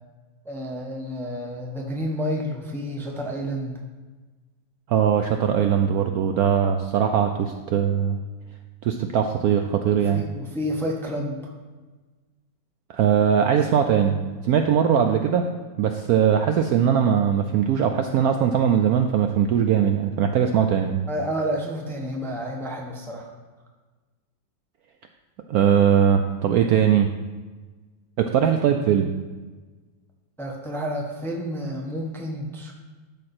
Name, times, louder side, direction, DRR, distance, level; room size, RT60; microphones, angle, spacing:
voice 1, 0.4-3.8 10.1-11.5 21.1-23.3 30.4-32.7, equal, ahead, 0 dB, 0.6 m, -30 dB
voice 2, 4.9-8.2 8.8-10.2 12.9-15.5 15.8-21.0 25.5-27.1 28.2-29.1, right 8 dB, 90° right, 5 dB, 0.8 m, -20 dB
12.5 x 5.1 x 4.3 m, 1.3 s
omnidirectional pair, 2.1 m